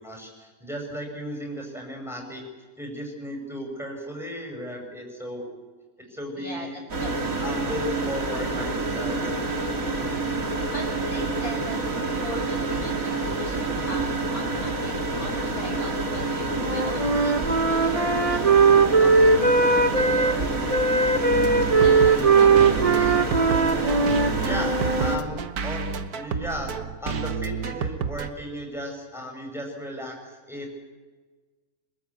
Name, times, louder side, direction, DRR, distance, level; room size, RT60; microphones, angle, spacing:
voice 1, 0.0-2.4 2.8-5.4 6.0-6.7 7.4-9.3 24.4-25.8 26.1-26.7 27.0-30.8, equal, ahead, 1 dB, 5.7 m, -35 dB
voice 2, 6.0-7.3 10.4-18.5 18.7-21.1 21.8-23.6, equal, 80° left, 0 dB, 7.1 m, -40 dB
Computer Hum, 6.9-25.2, right 2 dB, 65° right, 2.7 m, -28 dB
Wind instrument woodwind instrument, 16.6-20.4 20.7-25.2, right 4 dB, 25° right, 1.0 m, -20 dB
sound 1, 21.3-28.3, right 6 dB, 80° right, 1.7 m, -30 dB
26.5 x 21.5 x 8.4 m, 1.4 s
omnidirectional pair, 1.6 m